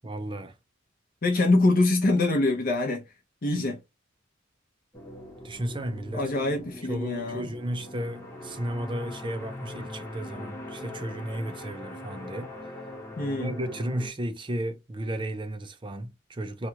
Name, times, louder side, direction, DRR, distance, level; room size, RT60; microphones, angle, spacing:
voice 1, 0.0-0.5 5.4-6.3 6.9-12.7 13.4-16.7, right 1 dB, 25° right, 0.5 m, -34 dB
voice 2, 1.2-3.0 3.4-3.8 6.1-7.5 13.2-13.5, left 2 dB, 45° left, 0.7 m, -24 dB
sound 1, 4.9-14.1, left 1 dB, 15° left, 0.9 m, -41 dB
3.0 x 2.3 x 2.8 m
head